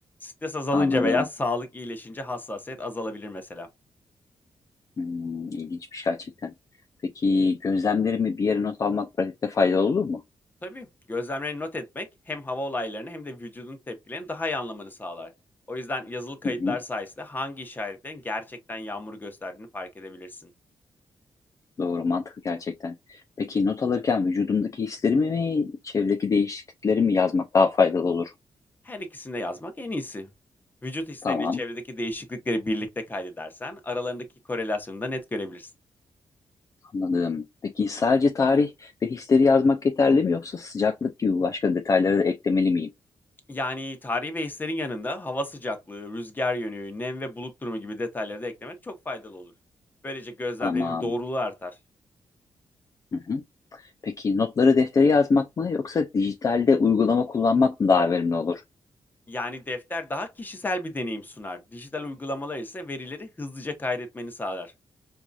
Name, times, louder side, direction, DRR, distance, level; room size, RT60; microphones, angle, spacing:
voice 1, 0.2-3.7 10.6-15.3 15.7-20.5 28.8-30.3 30.8-35.7 43.5-49.5 50.0-51.7 59.3-64.7, left 2 dB, 20° left, 0.9 m, -32 dB
voice 2, 0.7-1.2 5.0-6.5 7.1-10.2 16.4-16.8 21.8-28.3 31.2-31.6 36.9-42.9 50.6-51.1 53.1-53.4 53.7-58.6, left 4 dB, 40° left, 0.4 m, -23 dB
4.5 x 2.7 x 2.3 m
cardioid pair, 110°, 9 cm